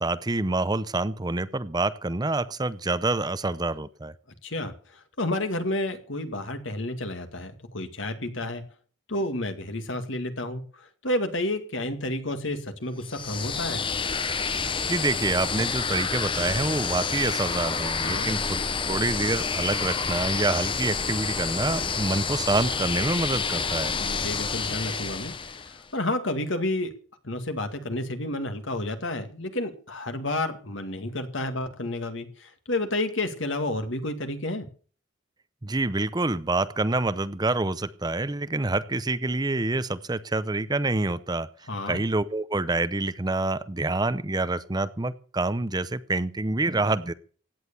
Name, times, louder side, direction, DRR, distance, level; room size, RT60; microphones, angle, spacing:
voice 1, 0.0-4.1 14.9-18.6 18.9-24.0 35.6-47.1, right 2 dB, 20° right, 14 dB, 0.6 m, -27 dB
voice 2, 4.4-8.6 9.1-13.8 18.0-18.3 23.9-26.9 27.2-34.7 41.7-42.0, left 1 dB, 70° left, 8 dB, 2.2 m, -30 dB
sound 1, 13.0-25.8, left 5 dB, 25° left, 0.8 m, -29 dB
16.5 x 9.6 x 6.9 m, 0.42 s
head